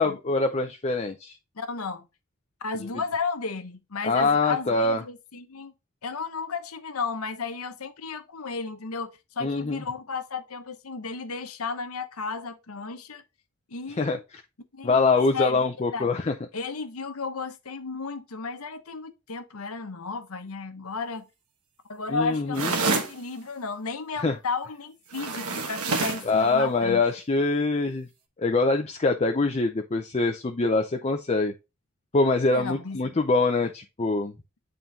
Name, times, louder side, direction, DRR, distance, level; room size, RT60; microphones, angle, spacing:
voice 1, 0.0-1.4 4.0-5.0 9.4-9.8 14.0-14.2 14.8-16.3 22.1-22.7 24.2-24.4 26.3-28.1 28.4-31.5 32.1-34.3, left 3 dB, 30° left, 0.5 m, -24 dB
voice 2, 1.6-2.1 2.6-5.7 6.0-13.2 13.7-14.2 14.7-15.6 15.9-16.1 16.5-21.3 21.9-27.0 32.5-33.0, left 4 dB, 80° left, 0.9 m, -34 dB
sound 1, 22.5-23.2 25.1-26.3, right 3 dB, 90° right, 1.1 m, -27 dB
8.9 x 3.8 x 2.8 m
head